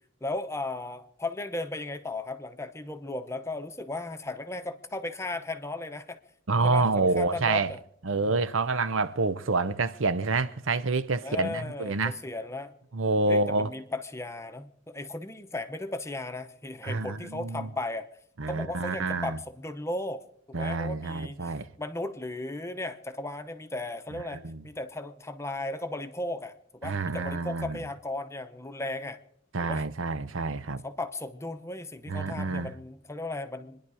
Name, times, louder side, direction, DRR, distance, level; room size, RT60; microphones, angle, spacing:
voice 1, 0.2-6.2 6.6-7.8 8.1-8.5 11.2-12.7 13.3-18.1 18.5-20.2 20.5-26.5 26.8-29.2 29.6-29.8 30.8-33.8, left 2 dB, 15° left, 0.8 m, -36 dB
voice 2, 6.5-7.7 8.0-12.2 12.9-13.7 16.8-17.7 18.4-19.4 20.5-21.7 24.3-24.6 26.8-27.8 29.5-30.8 32.1-32.7, right 3 dB, 85° right, 0.8 m, -28 dB
26.5 x 10.5 x 4.8 m
head